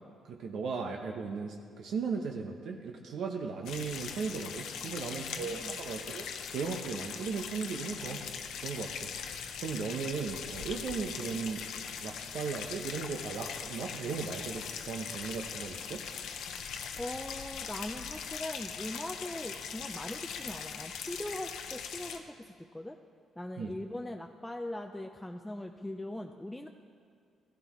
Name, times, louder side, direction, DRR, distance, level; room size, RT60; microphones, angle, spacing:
voice 1, 0.2-8.2 8.6-11.6 12.0-16.0 23.6-23.7, right 5 dB, 70° right, 3 dB, 0.8 m, -37 dB
sound 1, 3.7-22.2, left 7 dB, 80° left, 0.7 m, -40 dB
voice 2, 4.9-5.8 17.0-23.0 23.4-26.7, left 1 dB, 5° left, 3 dB, 0.5 m, -41 dB
14.5 x 11.5 x 3.1 m, 2.4 s
cardioid pair, 90°, 0 cm